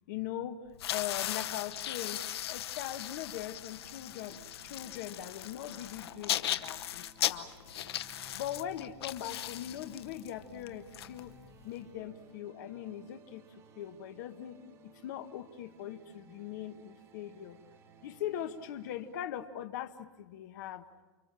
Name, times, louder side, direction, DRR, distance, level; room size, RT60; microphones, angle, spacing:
voice 1, 0.1-0.6 0.9-2.2 2.5-7.5 8.3-11.3 11.6-14.6 15.0-17.6 18.0-20.9, left 11 dB, 40° left, 8 dB, 1.2 m, -41 dB
sound 1, 0.7-11.8, left 12 dB, 60° left, 1.1 m, -38 dB
sound 2, 3.8-19.2, right 3 dB, 20° right, 1.3 m, -59 dB
29.5 x 24.0 x 7.5 m, 1.2 s
supercardioid pair, 180°, 15 cm